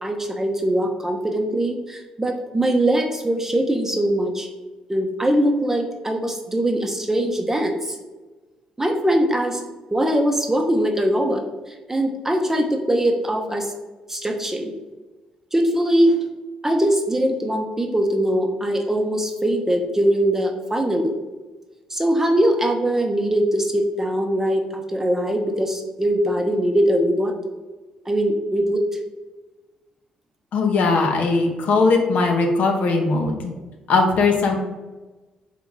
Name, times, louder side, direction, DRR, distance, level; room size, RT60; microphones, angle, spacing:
voice 1, 0.0-4.5 4.9-8.0 8.8-9.6 9.9-13.7 14.1-14.7 15.5-16.2 16.6-21.1 21.9-27.3 28.1-28.8, right 1 dB, 15° right, 3 dB, 0.7 m, -21 dB
voice 2, 30.5-33.4 33.9-34.5, left 3 dB, 65° left, 2 dB, 0.7 m, -19 dB
3.6 x 3.0 x 3.6 m, 1.2 s
supercardioid pair, 55°, 3 cm